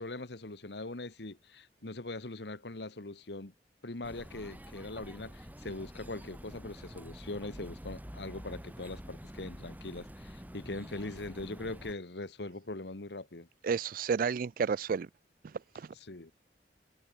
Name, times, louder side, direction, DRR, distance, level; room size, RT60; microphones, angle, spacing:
voice 1, 0.0-3.5 3.8-13.5 16.1-16.3, left 2 dB, 70° left, 1.5 m, -41 dB
sound 1, 4.0-11.9, equal, 10° right, 3.2 m, -47 dB
voice 2, 13.6-15.1 15.4-15.9, right 5 dB, 50° right, 0.4 m, -32 dB
head